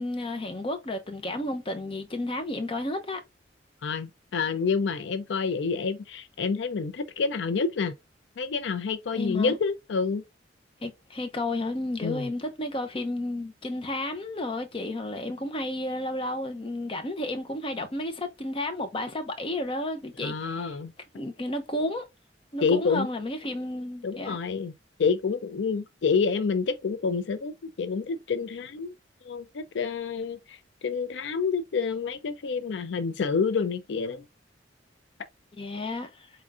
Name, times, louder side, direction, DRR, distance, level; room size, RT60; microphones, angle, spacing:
voice 1, 0.0-3.2 9.1-9.6 10.8-20.7 21.1-22.0 22.5-24.4 35.6-36.3, left 1 dB, 30° left, 0.7 m, -32 dB
voice 2, 3.8-7.9 8.4-10.2 12.0-12.3 20.2-20.9 22.6-23.1 24.0-24.7 25.0-28.9 29.2-34.2, left 5 dB, 80° left, 0.4 m, -28 dB
4.4 x 3.7 x 2.5 m
head